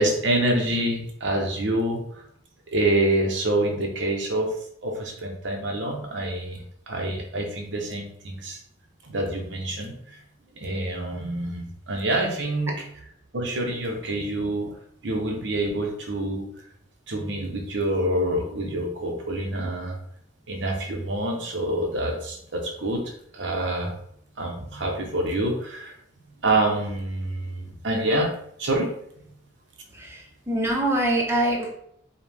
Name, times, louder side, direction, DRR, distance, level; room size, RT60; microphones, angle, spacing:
voice 1, 0.0-2.2 2.7-4.5 4.8-8.6 9.0-10.2 10.6-12.7 13.3-14.7 15.0-16.5 17.1-20.0 20.5-24.0 24.4-26.0 26.4-28.3 28.6-28.9, right 1 dB, 80° right, 1 dB, 0.9 m, -26 dB
voice 2, 30.0-31.8, right 1 dB, 15° right, -1 dB, 0.8 m, -24 dB
5.1 x 2.3 x 3.4 m, 0.69 s
head